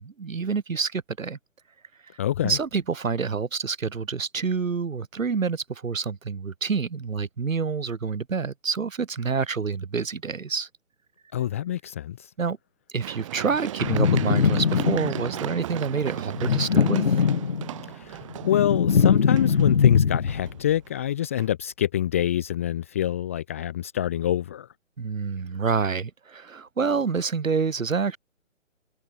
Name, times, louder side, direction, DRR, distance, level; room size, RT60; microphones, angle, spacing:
voice 1, 0.0-1.4 2.4-10.7 12.4-12.6 12.9-17.2 25.0-28.2, right 5 dB, 80° right, 1.9 m, -27 dB
voice 2, 2.2-2.6 11.3-12.3 17.9-24.7, left 11 dB, 10° left, 0.8 m, -26 dB
Run, 13.0-20.9 21.4-21.5, right 12 dB, 25° right, 2.1 m, -36 dB
sound 1, 13.8-15.4 16.3-17.8 18.2-20.6, left 6 dB, 45° left, 0.6 m, -21 dB
hypercardioid pair, 160°, 39 cm